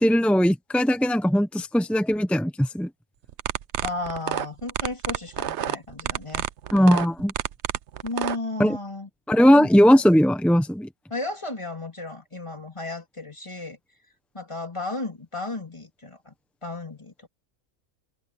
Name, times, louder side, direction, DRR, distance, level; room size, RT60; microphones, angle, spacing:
voice 1, 0.0-2.9 6.7-7.3 8.6-8.8 9.3-10.9, equal, ahead, 0.4 m, -19 dB
sound 1, 3.3-8.4, right 11 dB, 65° right, 0.8 m, -28 dB
voice 2, 3.8-6.5 8.0-9.1 9.5-9.7 11.1-13.8 14.3-16.3 16.6-17.3, left 2 dB, 20° left, 3.0 m, -34 dB
omnidirectional pair, 1.4 m